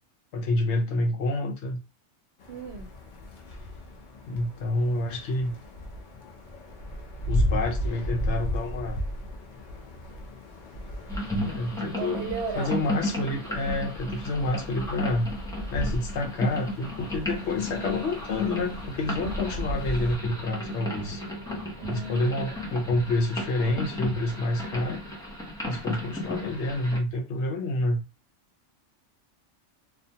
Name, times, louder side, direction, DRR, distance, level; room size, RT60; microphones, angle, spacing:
voice 1, 0.3-1.8 4.3-5.6 7.3-9.0 11.4-12.3 12.5-15.3 15.7-21.2 21.9-25.1 25.6-28.0, left 2 dB, 70° left, 0.9 m, -28 dB
sound 1, 2.4-20.2, equal, 55° left, 0.5 m, -35 dB
voice 2, 2.5-2.9 12.0-12.8 19.5-19.8 21.8-22.6, right 5 dB, 65° right, 0.8 m, -36 dB
sound 2, 11.1-27.0, equal, 5° left, 0.3 m, -34 dB
2.4 x 2.2 x 2.7 m
omnidirectional pair, 1.3 m